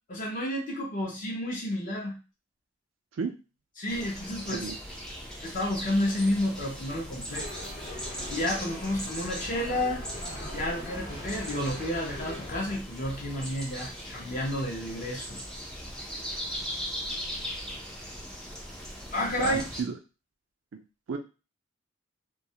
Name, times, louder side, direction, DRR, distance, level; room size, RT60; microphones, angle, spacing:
voice 1, 0.1-2.2 3.8-4.7 5.4-7.5 8.3-10.1 10.5-15.4 19.1-19.7, left 1 dB, 40° left, -2 dB, 0.6 m, -31 dB
sound 1, 3.9-19.8, equal, 5° left, 0.4 m, -39 dB
sound 2, 7.3-12.8, equal, 55° left, 0.9 m, -41 dB
voice 2, 19.4-19.9 21.1-21.2, right 5 dB, 70° right, 5 dB, 0.4 m, -32 dB
2.3 x 2.0 x 2.7 m, 0.31 s
head